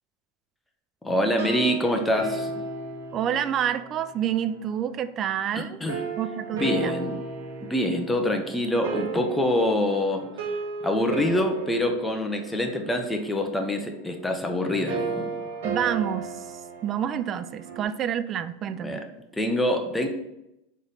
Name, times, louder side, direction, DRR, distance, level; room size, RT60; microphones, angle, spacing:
voice 1, 1.0-2.6 5.5-6.0 6.5-7.1 7.6-10.3 10.8-15.4 18.7-19.0 19.3-20.1, left 1 dB, 5° left, 3 dB, 0.7 m, -25 dB
sound 1, 1.2-4.6 5.9-17.8, right 4 dB, 85° right, 1.4 m, -35 dB
voice 2, 3.1-5.8 6.2-6.9 15.6-16.3 16.8-19.0, right 9 dB, 35° right, 13 dB, 0.3 m, -28 dB
4.0 x 3.2 x 4.0 m, 0.86 s
hypercardioid pair, 110°, 0 cm